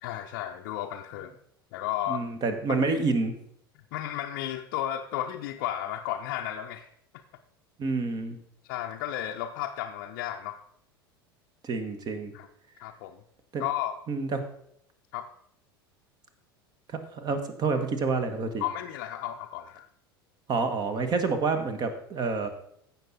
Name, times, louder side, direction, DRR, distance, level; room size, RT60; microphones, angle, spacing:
voice 1, 0.0-1.3 1.7-2.2 2.7-2.8 3.9-6.9 8.7-10.6 12.3-12.5 12.8-13.2 13.6-14.0 15.1-15.2 18.6-19.9, left 12 dB, 55° left, 1 dB, 0.7 m, -33 dB
voice 2, 2.1-3.3 7.8-8.4 11.6-12.3 13.5-13.6 14.1-14.4 16.9-18.6 20.5-22.5, right 4 dB, 35° right, 8 dB, 1.5 m, -28 dB
15.0 x 6.0 x 4.0 m, 0.70 s
figure-of-eight pair, 75°, 13 cm